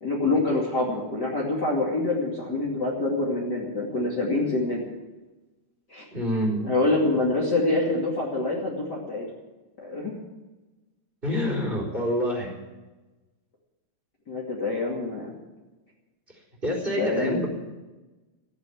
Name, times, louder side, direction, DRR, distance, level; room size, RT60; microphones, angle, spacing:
voice 1, 0.0-4.8 5.9-6.0 6.6-9.3 9.8-10.1 14.3-15.3 17.0-17.5, left 2 dB, 35° left, -4 dB, 2.9 m, -26 dB
voice 2, 6.1-6.7 11.2-12.5 16.6-17.5, equal, 15° right, -1 dB, 4.3 m, -27 dB
15.0 x 9.9 x 8.5 m, 1.1 s
omnidirectional pair, 3.4 m